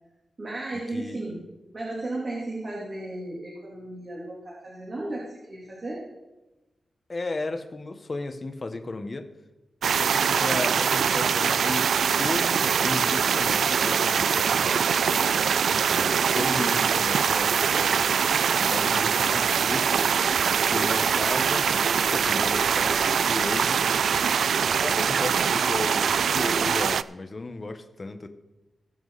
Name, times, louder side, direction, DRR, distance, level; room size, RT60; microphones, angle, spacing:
voice 1, 0.4-1.3 1.7-6.0, right 2 dB, 40° right, -4 dB, 3.2 m, -34 dB
voice 2, 0.9-1.2 7.1-9.3 9.9-11.9 12.2-15.4 15.9-18.2 18.6-20.1 20.7-23.8 24.7-28.3, left 2 dB, 35° left, 8 dB, 1.2 m, -34 dB
sound 1, 9.8-27.0, right 7 dB, 85° right, 0.3 m, -23 dB
20.0 x 7.2 x 4.1 m, 1.0 s
wide cardioid pair, 110°, 0 cm